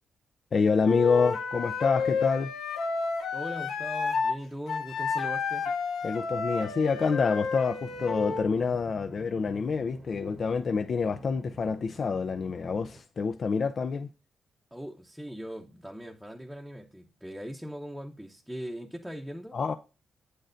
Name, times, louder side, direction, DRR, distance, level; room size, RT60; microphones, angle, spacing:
voice 1, 0.5-2.5 6.0-14.1 19.5-19.7, left 5 dB, 55° left, 0.4 m, -27 dB
Wind instrument woodwind instrument, 0.8-4.4 4.7-8.5, left 4 dB, 80° left, 0.8 m, -31 dB
voice 2, 3.3-5.7 14.7-19.6, equal, ahead, 0.7 m, -40 dB
sound 1, 7.9-13.0, right 2 dB, 30° right, 0.8 m, -48 dB
7.9 x 6.5 x 2.5 m
cardioid pair, 75°, 0 cm